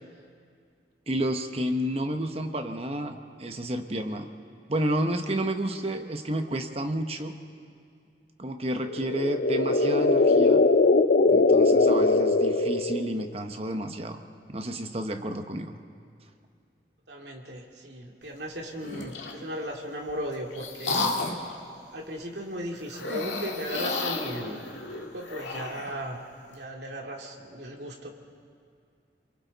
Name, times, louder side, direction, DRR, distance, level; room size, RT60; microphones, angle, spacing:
voice 1, 1.1-4.3 4.7-7.3 8.4-10.6 11.3-14.2 14.5-15.7, right 1 dB, 35° right, 6 dB, 1.0 m, -30 dB
sound 1, 8.9-13.3, left 3 dB, 60° left, 0.5 m, -21 dB
voice 2, 17.1-21.1 21.9-26.2 26.5-28.1, equal, 70° right, 1 dB, 2.3 m, -36 dB
sound 2, 18.8-19.4 20.1-21.5 22.9-25.9, left 3 dB, 85° left, 2.0 m, -32 dB
28.5 x 23.0 x 4.0 m, 2.3 s
head